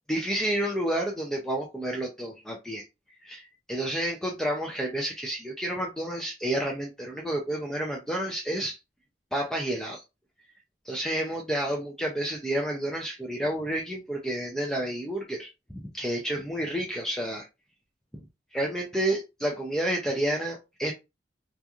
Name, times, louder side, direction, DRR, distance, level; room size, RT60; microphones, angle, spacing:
voice 1, 0.1-2.9 3.2-8.8 9.3-10.0 10.8-17.5 18.1-18.2 18.5-20.9, right 1 dB, 5° left, -1 dB, 0.4 m, -30 dB
2.8 x 2.4 x 2.3 m, 0.25 s
head